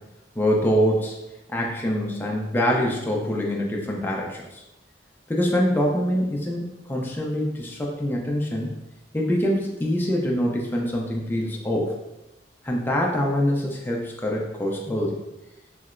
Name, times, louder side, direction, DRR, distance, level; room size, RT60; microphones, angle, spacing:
voice 1, 0.4-1.1 1.5-4.6 5.3-8.7 9.1-11.9 12.6-15.1, equal, 10° left, -2 dB, 0.4 m, -24 dB
3.1 x 2.8 x 2.4 m, 0.97 s
head